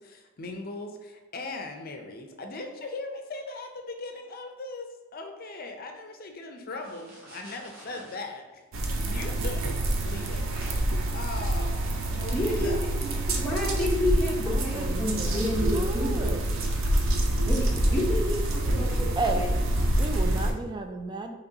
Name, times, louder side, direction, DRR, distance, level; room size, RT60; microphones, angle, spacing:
voice 1, 0.0-9.6 10.0-11.9 12.1-12.9, left 3 dB, 45° left, 4 dB, 0.6 m, -39 dB
sound 1, 6.8-8.2 9.4-11.1, right 1 dB, 50° right, 1.2 m, -49 dB
sound 2, 8.7-20.5, right 1 dB, 75° right, 0.6 m, -26 dB
voice 2, 12.3-16.4 17.5-19.5, left 1 dB, 5° left, -7 dB, 0.8 m, -30 dB
voice 3, 14.5-15.4 15.7-16.4 19.2-19.4 20.0-21.3, right 3 dB, 20° right, 5 dB, 0.4 m, -33 dB
5.5 x 3.0 x 2.7 m, 1.2 s
head